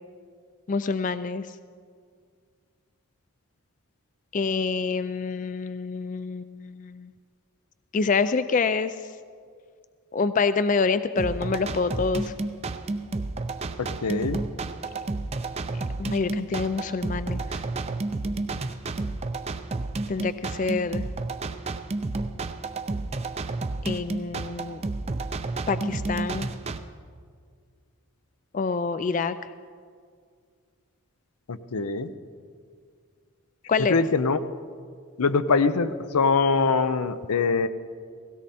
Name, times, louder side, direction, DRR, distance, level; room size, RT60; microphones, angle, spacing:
voice 1, 0.7-1.5 4.3-7.1 7.9-9.0 10.1-12.3 16.0-17.6 20.1-21.1 23.8-24.8 25.7-26.5 28.5-29.4 33.7-34.0, left 4 dB, 35° left, 13 dB, 0.3 m, -26 dB
sound 1, 11.2-26.8, right 3 dB, 30° right, 0.5 m, -31 dB
voice 2, 13.8-14.4 31.5-32.1 33.9-34.4 35.2-37.7, left 4 dB, 90° left, 12 dB, 0.7 m, -23 dB
17.5 x 16.5 x 4.3 m, 2.1 s
head